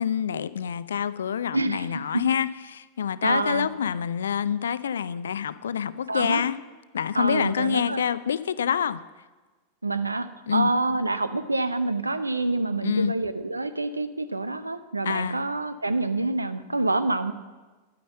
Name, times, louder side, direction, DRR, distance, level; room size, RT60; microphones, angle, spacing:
voice 1, 0.0-6.6 6.9-9.0 10.5-10.7 12.8-13.1 15.0-15.5, left 8 dB, 65° left, 16 dB, 0.5 m, -27 dB
voice 2, 1.5-2.2 3.2-3.7 6.1-6.4 7.1-8.0 9.8-17.3, right 2 dB, 80° right, 12 dB, 0.7 m, -27 dB
10.5 x 9.4 x 7.6 m, 1.3 s
figure-of-eight pair, 90°, 0 cm